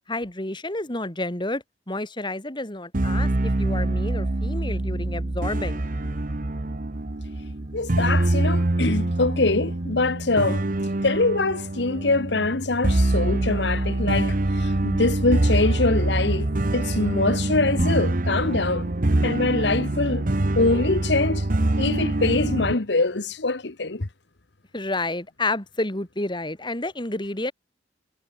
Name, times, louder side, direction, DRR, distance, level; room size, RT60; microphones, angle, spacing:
voice 1, 0.1-5.8 24.7-27.5, left 2 dB, 25° left, 3.1 m, -30 dB
sound 1, 2.9-22.7, right 1 dB, 50° right, 1.1 m, -25 dB
voice 2, 7.7-10.7 11.0-18.9 19.2-20.2 20.6-21.5 21.8-24.1, left 3 dB, 75° left, 1.4 m, -24 dB
head